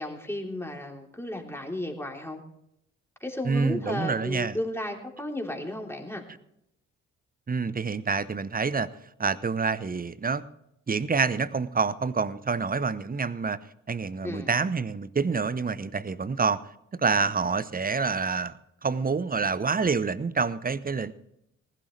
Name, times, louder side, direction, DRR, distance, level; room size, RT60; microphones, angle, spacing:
voice 1, 0.0-2.4 3.2-6.2 14.2-14.5, left 1 dB, 5° left, 1 dB, 3.4 m, -34 dB
voice 2, 3.4-4.6 7.5-8.9 9.2-10.4 10.9-13.6 13.9-16.6 17.0-18.5 18.8-21.1, right 5 dB, 25° right, 16 dB, 0.9 m, -27 dB
19.5 x 12.0 x 3.3 m, 0.79 s
hypercardioid pair, 45°, 36 cm